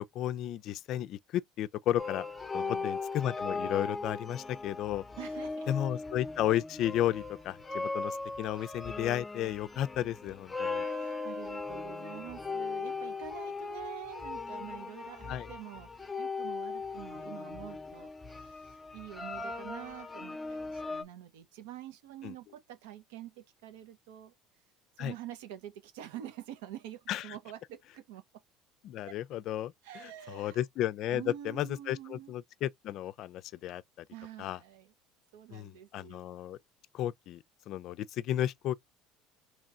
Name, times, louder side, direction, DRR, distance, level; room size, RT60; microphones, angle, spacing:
voice 1, 0.0-2.3 2.5-5.0 5.7-10.8 15.3-15.5 22.2-22.3 25.0-25.1 27.1-27.2 28.8-34.1 34.4-34.6 35.5-36.6 36.9-38.8, left 12 dB, 60° left, 0.3 m, -33 dB
sound 1, 2.0-21.0, left 3 dB, 15° left, 0.6 m, -38 dB
voice 2, 2.5-3.0 5.2-5.7 10.8-24.3 25.0-28.2 29.0-29.2 29.8-30.6 31.0-32.3 34.1-34.9 35.3-36.2, right 11 dB, 90° right, 0.8 m, -47 dB
3.0 x 2.5 x 4.2 m
supercardioid pair, 105°, 0 cm